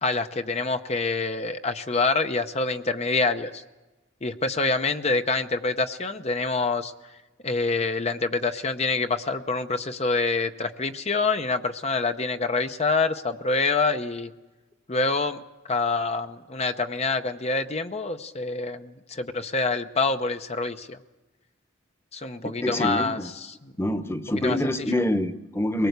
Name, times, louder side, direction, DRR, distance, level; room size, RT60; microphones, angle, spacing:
voice 1, 0.0-3.6 4.2-6.9 7.4-14.3 14.9-15.4 15.7-21.0 22.1-23.7 24.3-24.9, left 3 dB, 35° left, 8 dB, 0.8 m, -26 dB
voice 2, 22.6-23.3 23.8-25.9, left 1 dB, 15° left, 10 dB, 1.1 m, -26 dB
22.5 x 19.5 x 8.1 m, 1.1 s
head